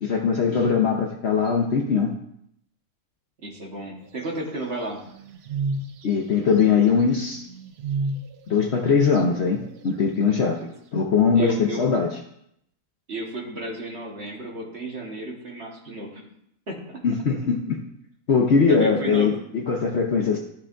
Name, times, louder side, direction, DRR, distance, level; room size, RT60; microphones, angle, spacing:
voice 1, 0.0-2.1 6.0-7.4 8.5-10.6 10.9-12.2 17.0-17.8 18.3-20.4, left 5 dB, 55° left, 1 dB, 0.8 m, -21 dB
voice 2, 3.4-5.0 11.3-11.9 13.1-16.3 16.7-17.0 18.7-19.3, right 1 dB, 45° right, -1 dB, 1.5 m, -33 dB
sound 1, 4.2-6.1 6.6-6.7 7.0-7.1 7.3-8.4 8.7-10.0, right 3 dB, 65° right, 0.6 m, -31 dB
13.5 x 4.5 x 2.5 m, 0.73 s
omnidirectional pair, 1.6 m